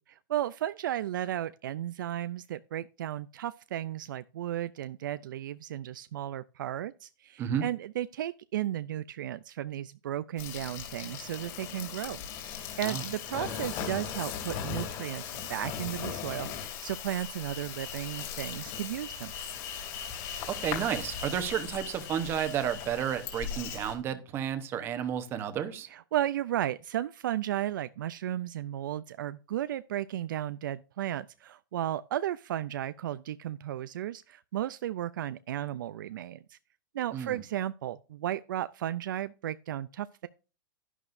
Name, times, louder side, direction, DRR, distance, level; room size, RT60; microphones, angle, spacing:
voice 1, 0.3-15.2 15.5-19.3 25.9-36.6 36.9-40.3, right 12 dB, 65° right, 0.4 m, -34 dB
Insect, 10.4-23.9, left 8 dB, 35° left, 2.8 m, -38 dB
voice 2, 20.5-25.9 37.1-37.4, right 9 dB, 20° right, 1.0 m, -32 dB
11.0 x 11.0 x 2.6 m
hypercardioid pair, 165°, 12 cm